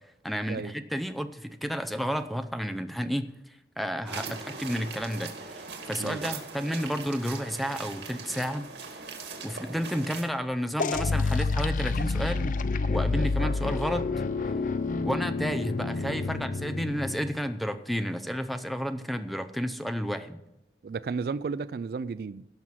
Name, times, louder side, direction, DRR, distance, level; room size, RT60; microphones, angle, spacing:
voice 1, 0.2-3.3 3.8-8.7 9.4-12.6 12.9-14.0 15.0-20.4, equal, ahead, 0.6 m, -31 dB
sound 1, 4.1-10.2, right 4 dB, 85° right, 2.3 m, -40 dB
voice 2, 6.0-6.4 20.8-22.5, right 5 dB, 55° right, 0.3 m, -33 dB
sound 2, 10.8-17.4, left 3 dB, 50° left, 0.5 m, -28 dB
17.0 x 6.2 x 5.8 m
head